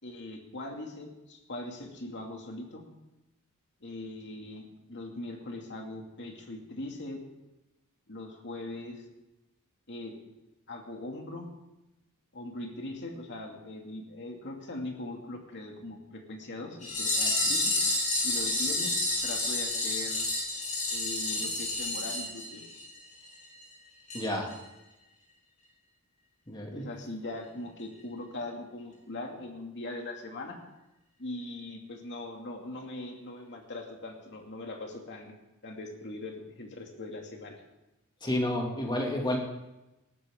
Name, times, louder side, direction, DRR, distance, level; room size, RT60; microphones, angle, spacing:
voice 1, 0.0-2.8 3.8-7.3 8.1-9.0 9.9-10.2 10.7-11.5 12.3-17.8 18.2-19.0 19.2-20.3 20.9-22.6 26.7-30.6 31.2-35.3 35.6-37.6, left 2 dB, 55° left, 2 dB, 2.4 m, -41 dB
sound 1, 16.8-23.0 23.3-23.4 23.6-23.7 24.1-24.2 24.5-24.6, left 2 dB, 35° left, 6.9 m, -29 dB
voice 2, 24.1-24.5 26.5-26.9 38.2-39.4, left 1 dB, 20° left, 0 dB, 2.6 m, -30 dB
19.5 x 13.5 x 3.8 m, 0.98 s
head